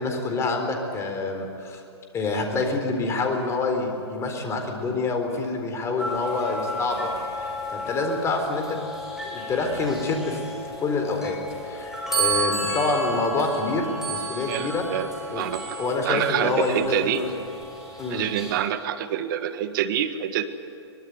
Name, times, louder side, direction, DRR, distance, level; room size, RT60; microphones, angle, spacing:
voice 1, 0.0-1.8 2.1-7.1 7.7-8.8 9.2-10.4 10.8-11.4 11.6-14.8 15.3-15.4 15.8-17.3 18.0-18.3, left 3 dB, 20° left, 4 dB, 4.1 m, -27 dB
sound 1, 6.0-18.6, right 1 dB, 5° right, 7.1 m, -32 dB
voice 2, 14.5-15.1 15.3-15.8 16.0-17.2 18.1-20.4, right 10 dB, 50° right, 10 dB, 1.7 m, -26 dB
23.0 x 20.5 x 9.5 m, 2.5 s
hypercardioid pair, 120°, 14 cm